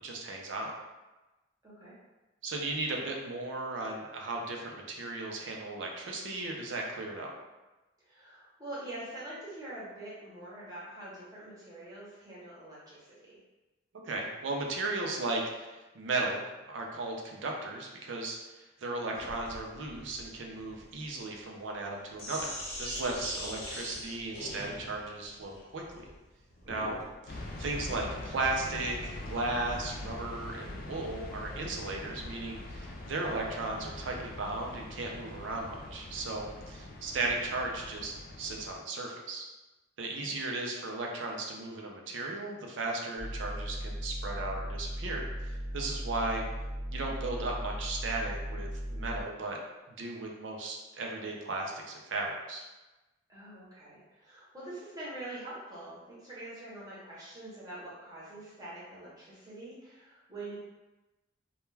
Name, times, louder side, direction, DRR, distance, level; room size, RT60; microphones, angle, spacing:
voice 1, 0.0-0.7 2.4-7.3 14.0-18.4 18.8-22.5 22.8-25.8 26.7-27.0 27.4-39.5 40.0-46.4 46.9-49.6 49.9-52.7, right 2 dB, 70° right, 0 dB, 0.5 m, -36 dB
voice 2, 1.6-2.0 8.0-13.4 26.6-27.0 40.1-40.3 53.3-60.6, right 1 dB, 20° right, -9 dB, 0.8 m, -45 dB
Sink (filling or washing), 19.1-27.1, left 1 dB, 85° left, 0.7 m, -43 dB
sound 1, 27.3-38.7, left 1 dB, 50° left, 0.3 m, -43 dB
sound 2, 43.2-49.2, equal, 10° left, 0.8 m, -37 dB
2.2 x 2.2 x 3.1 m, 1.1 s
head